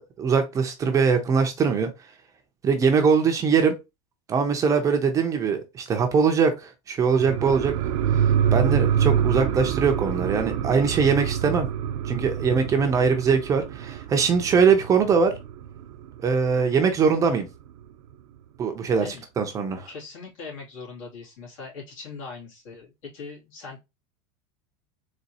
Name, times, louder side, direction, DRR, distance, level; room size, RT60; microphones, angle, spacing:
voice 1, 0.2-1.9 2.6-3.8 4.3-7.7 8.5-11.7 12.0-15.3 16.2-17.5 18.6-19.9, right 5 dB, 20° right, 0.6 m, -22 dB
sound 1, 7.1-16.2 16.6-16.7, right 9 dB, 70° right, 0.6 m, -26 dB
voice 2, 8.5-8.8 19.0-19.2 19.9-23.8, left 4 dB, 80° left, 2.5 m, -41 dB
4.1 x 3.0 x 2.7 m
supercardioid pair, 160°, 17 cm